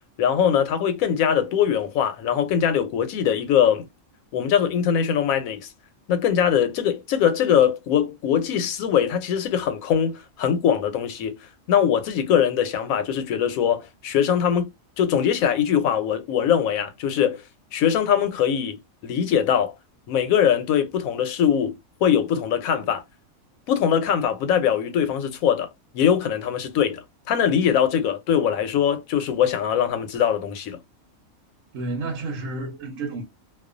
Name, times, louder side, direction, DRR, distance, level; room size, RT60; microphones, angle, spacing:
voice 1, 0.2-3.9 4.3-5.7 6.1-11.3 11.7-17.4 17.7-19.7 20.1-21.8 22.0-23.0 23.7-25.7 25.9-30.8, left 8 dB, 85° left, 1.0 m, -22 dB
voice 2, 31.7-33.2, right 3 dB, 70° right, 1.0 m, -30 dB
2.4 x 2.2 x 2.4 m
omnidirectional pair, 1.4 m